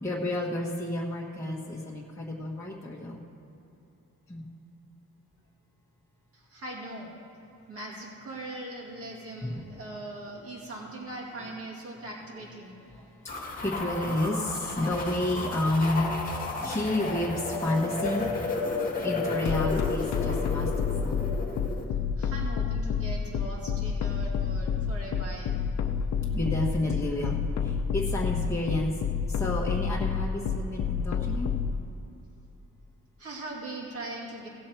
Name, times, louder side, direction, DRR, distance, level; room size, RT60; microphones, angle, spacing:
voice 1, 0.0-3.2 4.3-4.4 9.4-9.7 12.9-18.5 19.0-21.2 26.3-28.9 29.3-31.5, left 1 dB, 10° left, -5 dB, 1.2 m, -31 dB
voice 2, 6.3-7.2 7.7-12.8 22.2-25.6 33.2-34.5, right 2 dB, 50° right, -3 dB, 2.3 m, -40 dB
sound 1, 13.3-21.8, left 3 dB, 25° left, 1.6 m, -32 dB
sound 2, 19.5-31.7, left 8 dB, 65° left, 0.6 m, -28 dB
17.0 x 7.4 x 4.5 m, 2.9 s
wide cardioid pair, 155°, 31 cm